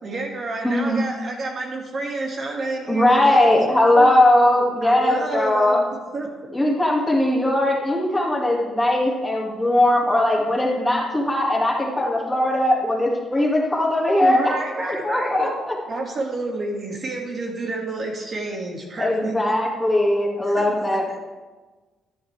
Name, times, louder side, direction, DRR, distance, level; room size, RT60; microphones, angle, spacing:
voice 1, 0.0-3.5 3.9-4.1 4.8-5.8 6.1-6.3 14.2-15.5 15.9-19.3 20.5-20.7, right 2 dB, 45° right, 0 dB, 2.2 m, -29 dB
voice 2, 0.6-1.1 2.9-5.8 6.5-15.7 19.0-21.2, left 1 dB, 10° left, -2 dB, 2.2 m, -20 dB
12.0 x 11.0 x 3.4 m, 1.3 s
cardioid pair, 90°, 0 cm